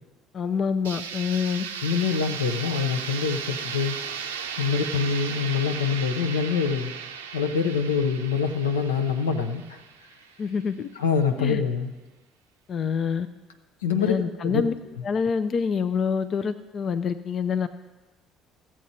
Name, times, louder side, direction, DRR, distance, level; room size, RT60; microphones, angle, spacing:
voice 1, 0.3-1.7 10.4-10.9 11.4-11.6 12.7-13.3 14.0-14.7 15.0-17.7, left 6 dB, 45° left, 10 dB, 0.5 m, -26 dB
sound 1, 0.8-10.6, right 7 dB, 85° right, 0.5 m, -36 dB
voice 2, 1.8-4.0 4.6-6.9 7.3-9.8 11.0-11.9 13.8-14.6, left 6 dB, 85° left, 5 dB, 0.7 m, -25 dB
14.0 x 7.6 x 4.1 m, 1.2 s
hypercardioid pair, 55°, 0 cm